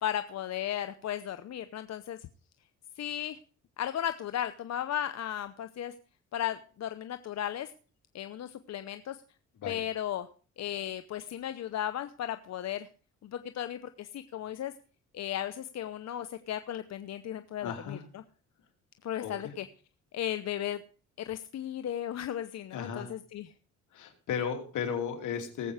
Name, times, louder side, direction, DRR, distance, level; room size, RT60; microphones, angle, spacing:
voice 1, 0.0-2.3 3.0-3.4 3.8-5.9 6.3-7.7 8.1-9.2 9.7-10.3 10.6-12.9 13.2-14.7 15.1-18.2 19.0-19.7 20.1-20.8 21.2-23.5, left 11 dB, 60° left, 10 dB, 0.8 m, -35 dB
voice 2, 17.6-18.0 19.2-19.5 22.7-23.1 23.9-25.7, left 7 dB, 80° left, 4 dB, 3.0 m, -35 dB
18.5 x 7.8 x 4.9 m, 0.40 s
cardioid pair, 90°, 30 cm